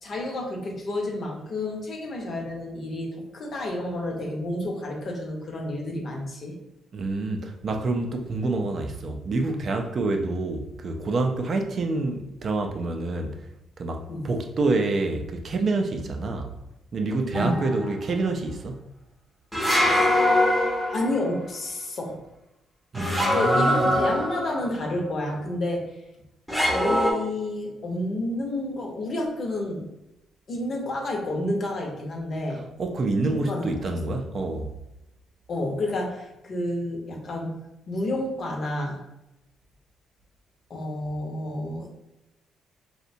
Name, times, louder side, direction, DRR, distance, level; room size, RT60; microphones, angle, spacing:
voice 1, 0.0-6.6 14.1-14.3 17.3-17.6 19.8-20.1 20.9-22.2 23.3-26.0 26.5-29.9 30.5-32.6 33.2-34.0 35.5-39.0 40.7-41.9, left 1 dB, 50° left, 0.7 m, -30 dB
voice 2, 6.9-13.5 13.8-16.5 16.9-18.9 22.9-23.9 32.8-34.7, right 3 dB, 50° right, 0.3 m, -27 dB
sound 1, 17.3-17.9 19.5-21.3 22.9-24.7 26.5-27.1, left 1 dB, ahead, 0.6 m, -23 dB
2.6 x 2.1 x 2.6 m
cardioid pair, 90°, 0 cm